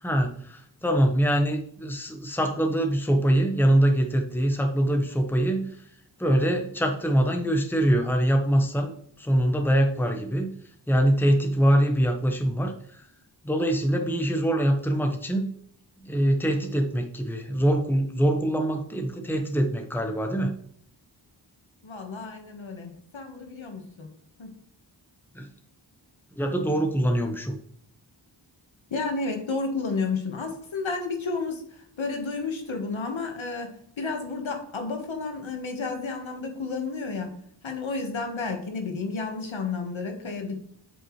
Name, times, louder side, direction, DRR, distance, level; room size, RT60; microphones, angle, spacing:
voice 1, 0.0-5.8 6.2-8.9 9.2-10.6 10.9-13.0 13.4-15.5 16.0-20.6 25.3-25.5 26.4-27.6, right 1 dB, 5° left, 4 dB, 1.2 m, -24 dB
voice 2, 21.8-24.1 24.4-24.5 28.9-31.6 32.0-37.3 37.6-40.6, left 4 dB, 90° left, 4 dB, 1.6 m, -31 dB
8.0 x 7.4 x 3.2 m, 0.65 s
cardioid pair, 40°, 45 cm